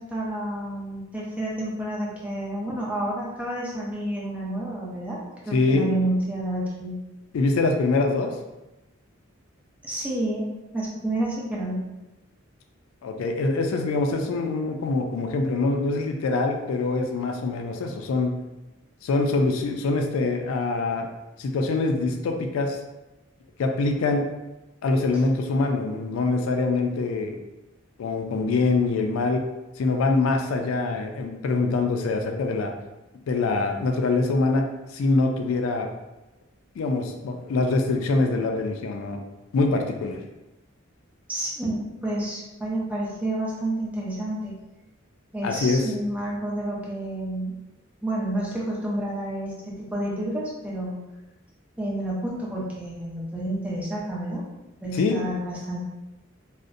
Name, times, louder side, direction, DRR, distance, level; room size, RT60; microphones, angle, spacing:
voice 1, 0.0-7.0 9.8-10.5 10.7-11.8 41.3-44.6 45.3-47.5 48.0-51.0 51.8-54.4 54.8-55.8, right 1 dB, 5° right, -5 dB, 0.5 m, -29 dB
voice 2, 5.5-5.9 7.3-8.3 13.0-18.3 19.0-21.1 21.4-22.8 23.6-24.2 24.8-27.4 28.0-29.4 29.8-32.7 33.3-34.6 34.9-35.9 36.8-39.2 39.5-40.2 45.4-45.9 54.9-55.2, left 3 dB, 85° left, 4 dB, 0.3 m, -24 dB
2.5 x 2.0 x 2.5 m, 1.0 s
head